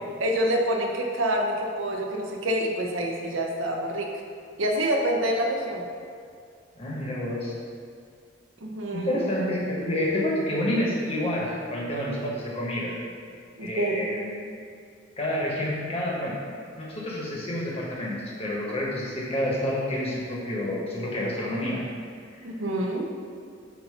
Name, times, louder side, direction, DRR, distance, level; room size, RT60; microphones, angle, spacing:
voice 1, 0.2-4.1 4.6-5.9 8.6-9.2 13.6-14.0 22.4-23.1, right 1 dB, 75° right, 0 dB, 0.9 m, -27 dB
voice 2, 6.8-7.5 8.9-12.9 13.6-14.3 15.2-16.4 16.8-21.8 22.3-22.5, left 1 dB, 30° left, -4 dB, 1.3 m, -29 dB
8.3 x 2.9 x 5.6 m, 2.3 s
head